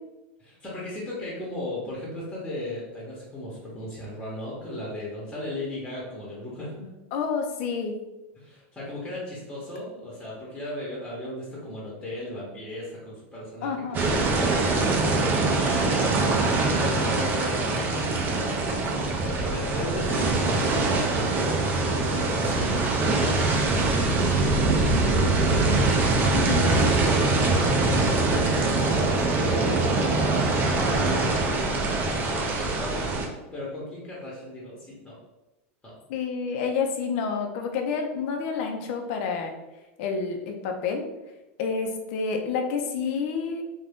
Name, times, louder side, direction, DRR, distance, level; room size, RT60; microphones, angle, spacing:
voice 1, 0.4-6.9 8.4-18.9 19.2-25.8 26.5-28.6 29.0-35.1 35.8-35.9, left 1 dB, 10° left, -6 dB, 0.9 m, -36 dB
voice 2, 7.1-8.0 13.6-14.2 26.3-26.8 36.1-39.5 40.0-41.0 41.6-43.6, left 5 dB, 60° left, 4 dB, 0.5 m, -29 dB
sound 1, 13.9-33.3, right 3 dB, 25° right, 0.5 m, -23 dB
2.6 x 2.2 x 3.4 m, 1.0 s
supercardioid pair, 130°, 7 cm